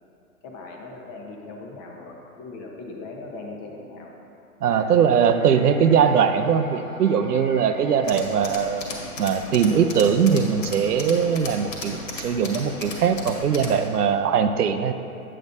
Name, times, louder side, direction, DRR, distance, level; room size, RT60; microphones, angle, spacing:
voice 1, 0.4-4.1 4.6-5.0, left 3 dB, 30° left, 0 dB, 1.0 m, -39 dB
voice 2, 4.6-8.9 9.2-14.9, right 7 dB, 85° right, 8 dB, 0.6 m, -21 dB
sound 1, 4.9-9.1, left 1 dB, 5° left, 0.4 m, -42 dB
Tools, 8.0-13.9, left 2 dB, 55° left, 1.7 m, -36 dB
8.6 x 8.6 x 2.6 m, 2.7 s
hypercardioid pair, 120°, 45 cm